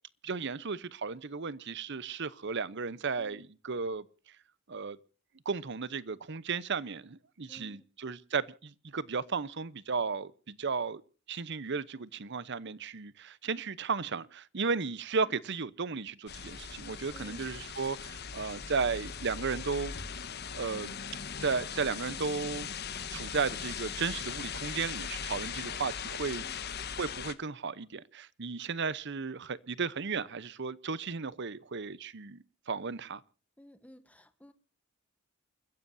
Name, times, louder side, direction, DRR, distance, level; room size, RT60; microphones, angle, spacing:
voice 1, 0.2-4.1 4.7-5.0 5.4-11.0 11.3-19.9 20.5-21.0 21.4-22.7 23.1-33.2, right 5 dB, 60° right, 0.9 m, -34 dB
voice 2, 3.2-3.5 7.5-7.8 17.1-17.5 26.4-26.6 33.6-34.5, equal, 5° left, 1.2 m, -54 dB
sound 1, 16.3-27.3, left 7 dB, 55° left, 1.3 m, -39 dB
29.0 x 15.5 x 2.7 m
head